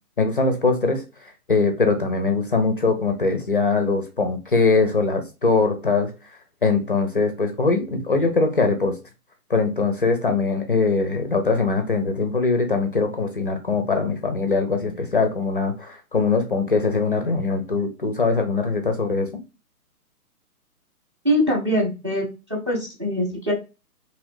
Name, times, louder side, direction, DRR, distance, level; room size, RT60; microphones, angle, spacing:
voice 1, 0.2-1.0 1.5-6.1 6.6-9.0 9.5-19.3, left 4 dB, 40° left, 6 dB, 0.4 m, -22 dB
voice 2, 21.2-22.2 22.5-23.5, equal, 20° right, 0 dB, 0.4 m, -23 dB
2.8 x 2.5 x 3.1 m, 0.29 s
figure-of-eight pair, 130°, 45 cm